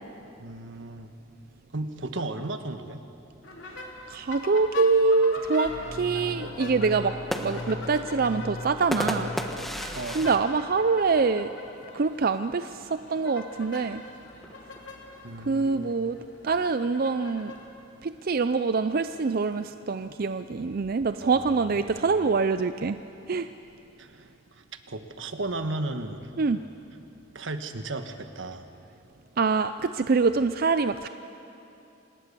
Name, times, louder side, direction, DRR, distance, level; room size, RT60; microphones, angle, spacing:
voice 1, 0.4-1.1 1.7-3.0 9.9-10.5 15.2-15.9 21.2-22.1 24.0-26.2 27.3-28.6, right 2 dB, 85° right, 7 dB, 1.4 m, -35 dB
sound 1, 3.4-17.7, left 2 dB, 75° left, 2.9 m, -43 dB
voice 2, 4.1-9.3 10.1-11.5 11.9-14.0 15.5-16.2 16.4-17.5 18.0-23.0 23.3-23.5 26.4-26.6 29.4-31.1, right 4 dB, 50° right, 11 dB, 0.5 m, -25 dB
sound 2, 5.6-9.7, left 1 dB, 90° left, 7.3 m, -38 dB
sound 3, 7.0-11.6 12.0-12.1 12.4-12.9 13.7-15.3, equal, ahead, 1.2 m, -35 dB
26.5 x 19.5 x 6.9 m, 2.9 s
head